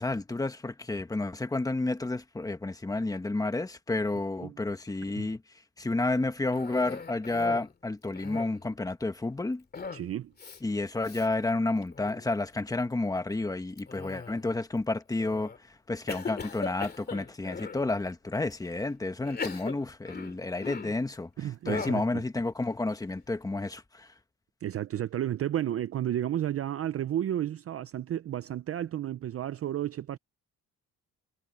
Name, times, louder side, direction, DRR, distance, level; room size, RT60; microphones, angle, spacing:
voice 1, 0.0-5.4 5.8-9.6 10.6-15.5 15.9-21.3 21.7-24.1, left 2 dB, 10° left, 1.3 m, -30 dB
Cough, 6.5-7.7 8.0-8.7 9.7-10.1 10.4-10.6 11.0-11.3 11.8-12.3 13.8-14.6 15.2-15.6 16.1-17.8 18.5-18.6 19.2-21.1 21.7-22.1, left 5 dB, 30° left, 2.7 m, -39 dB
voice 2, 9.9-10.3 21.4-22.0 24.6-30.2, right 11 dB, 45° right, 0.5 m, -32 dB
cardioid pair, 160°, 34 cm